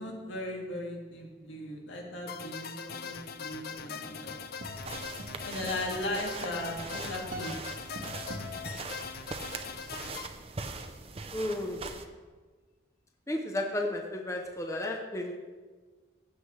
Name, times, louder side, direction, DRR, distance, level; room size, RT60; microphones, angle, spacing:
voice 1, 0.0-4.4 5.4-7.6, left 1 dB, 85° left, 0 dB, 2.1 m, -37 dB
sound 1, 2.3-10.3, left 6 dB, 50° left, 0.5 m, -41 dB
sound 2, 4.2-9.4, equal, 75° right, 1.4 m, -44 dB
sound 3, 4.7-12.0, right 4 dB, 30° right, 0.6 m, -42 dB
voice 2, 11.3-11.8 13.3-15.4, left 1 dB, 15° left, 2 dB, 0.7 m, -33 dB
15.5 x 7.7 x 3.2 m, 1.4 s
head